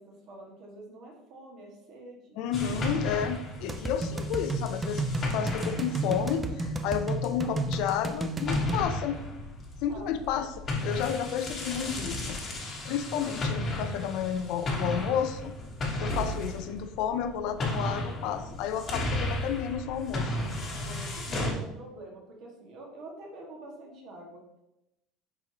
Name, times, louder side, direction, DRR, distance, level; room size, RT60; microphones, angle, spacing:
voice 1, 0.0-2.4 9.9-10.6 20.6-24.4, right 1 dB, 50° right, -1 dB, 1.7 m, -46 dB
voice 2, 2.4-5.0 5.3-9.2 9.8-10.5 10.8-12.4 12.8-15.5 16.0-20.5, left 8 dB, 60° left, 9 dB, 0.5 m, -31 dB
sound 1, 2.5-8.1 8.4-21.5, left 1 dB, 25° left, 1.3 m, -34 dB
sound 2, 3.7-8.8, right 2 dB, 15° right, 0.4 m, -32 dB
10.0 x 4.1 x 2.9 m, 0.89 s
cardioid pair, 165°, 0 cm